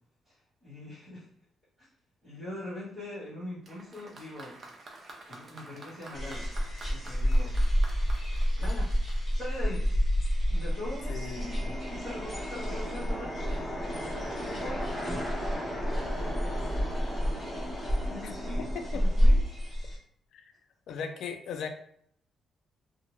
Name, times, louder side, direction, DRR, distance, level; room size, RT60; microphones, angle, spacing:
voice 1, 0.2-1.3 1.8-1.9 2.2-4.6 5.3-6.5 6.9-7.6 8.6-8.9 9.3-9.9 10.5-13.9 14.4-14.9 18.1-19.4, left 1 dB, 20° right, -10 dB, 1.4 m, -42 dB
Applause, 3.6-10.1, right 2 dB, 35° right, 0.4 m, -50 dB
sound 1, 6.1-20.0, equal, 25° left, 1.4 m, -29 dB
sound 2, 10.6-19.6, equal, 5° left, 0.9 m, -38 dB
voice 2, 11.1-11.4 18.9-19.0 20.3-20.5 20.9-21.7, left 6 dB, 75° left, 5 dB, 0.3 m, -37 dB
2.7 x 2.1 x 3.0 m, 0.66 s
cardioid pair, 165°, 0 cm